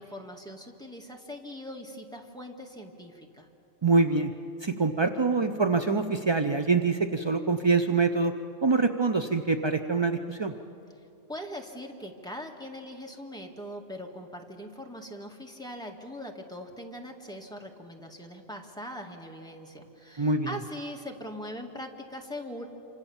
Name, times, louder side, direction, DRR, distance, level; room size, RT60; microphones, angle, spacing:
voice 1, 0.0-3.5 11.3-22.7, equal, 5° left, 1 dB, 1.9 m, -41 dB
voice 2, 3.8-4.3 4.6-8.3 8.6-10.5 20.2-20.5, right 4 dB, 40° right, 8 dB, 0.3 m, -25 dB
27.0 x 25.0 x 7.2 m, 2.6 s
omnidirectional pair, 1.5 m